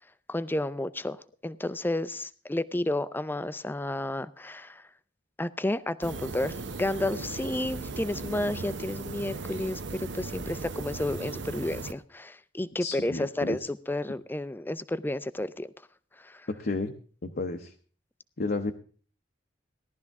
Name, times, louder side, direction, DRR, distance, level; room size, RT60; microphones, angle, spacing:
voice 1, 0.3-1.2 1.4-4.8 5.4-15.7 16.2-16.5, left 1 dB, 10° left, 16 dB, 0.5 m, -31 dB
sound 1, 6.0-11.9, right 3 dB, 70° right, 0.8 m, -37 dB
voice 2, 12.8-13.6 16.5-16.9 17.2-17.7 18.4-18.7, left 3 dB, 55° left, 4 dB, 0.8 m, -31 dB
17.0 x 12.0 x 3.6 m, 0.42 s
head